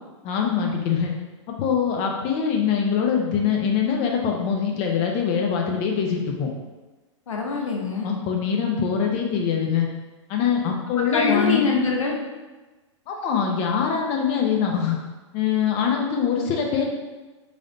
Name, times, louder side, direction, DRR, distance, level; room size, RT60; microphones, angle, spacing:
voice 1, 0.2-1.1 1.6-6.5 8.0-9.9 10.3-11.7 13.1-15.0 15.3-16.9, left 7 dB, 35° left, 1 dB, 0.5 m, -23 dB
voice 2, 7.3-8.1 11.0-12.2, left 4 dB, 90° left, -1 dB, 0.8 m, -24 dB
3.2 x 2.6 x 3.8 m, 1.2 s
hypercardioid pair, 120°, 16 cm